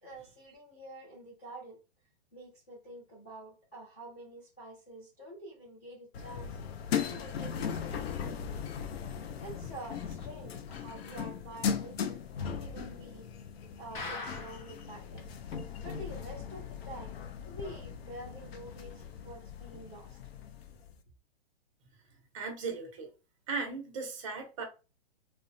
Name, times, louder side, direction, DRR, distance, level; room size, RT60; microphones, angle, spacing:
voice 1, 0.0-1.8 2.3-6.6 7.1-8.7 9.4-13.3 13.8-15.2 15.8-17.1 17.4-20.1, right 1 dB, 15° left, 0.3 m, -48 dB
sound 1, 6.1-20.9, left 7 dB, 80° left, 0.5 m, -38 dB
sound 2, 13.9-14.8 15.2-15.3 15.5-15.6 16.1-16.2, left 3 dB, 55° left, 0.9 m, -40 dB
voice 2, 22.3-23.1 23.5-24.6, right 4 dB, 35° right, 0.6 m, -37 dB
2.9 x 2.0 x 2.5 m
hypercardioid pair, 170°, 30 cm